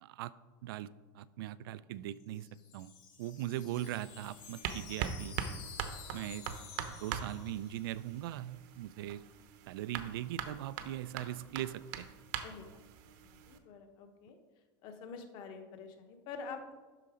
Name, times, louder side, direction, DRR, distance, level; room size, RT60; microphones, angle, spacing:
voice 1, 0.0-0.3 0.6-2.5 2.7-2.9 3.2-5.4 6.1-6.4 7.0-9.2 9.7-12.1, right 13 dB, 80° right, 17 dB, 0.4 m, -40 dB
Wind chime, 2.1-8.1, left 8 dB, 55° left, 2.1 m, -52 dB
sound 1, 3.8-13.6, right 8 dB, 55° right, 0.8 m, -43 dB
voice 2, 13.1-14.4 14.8-16.7, left 5 dB, 40° left, 6 dB, 1.0 m, -47 dB
11.5 x 3.9 x 4.9 m, 1.3 s
supercardioid pair, 165°, 12 cm